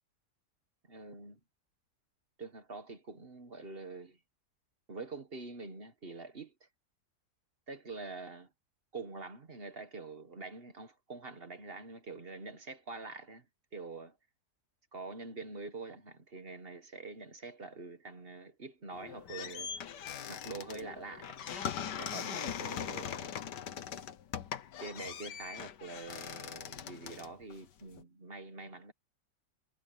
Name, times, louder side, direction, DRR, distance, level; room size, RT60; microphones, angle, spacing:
voice 1, 0.9-1.4 2.4-4.2 4.9-6.7 7.7-8.5 8.9-13.4 13.7-14.2 14.9-19.7 20.3-21.7 22.0-23.3 24.8-28.9, right 3 dB, 35° right, 1.5 m, -45 dB
sound 1, 18.9-28.0, left 8 dB, 85° left, 1.7 m, -41 dB
omnidirectional pair, 1.8 m